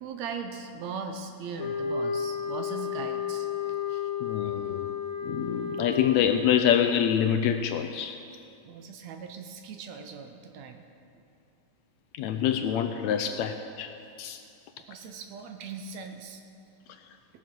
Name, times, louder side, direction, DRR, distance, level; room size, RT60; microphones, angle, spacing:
voice 1, 0.0-4.1 4.5-4.6 8.6-10.8 14.8-16.4, right 5 dB, 75° right, 5 dB, 1.8 m, -40 dB
sound 1, 1.6-6.5, left 6 dB, 55° left, 1.8 m, -32 dB
voice 2, 4.2-4.9 5.2-8.2 12.1-13.9 14.2-14.4, left 9 dB, 80° left, 7 dB, 1.7 m, -26 dB
17.5 x 6.8 x 6.1 m, 2.5 s
omnidirectional pair, 3.5 m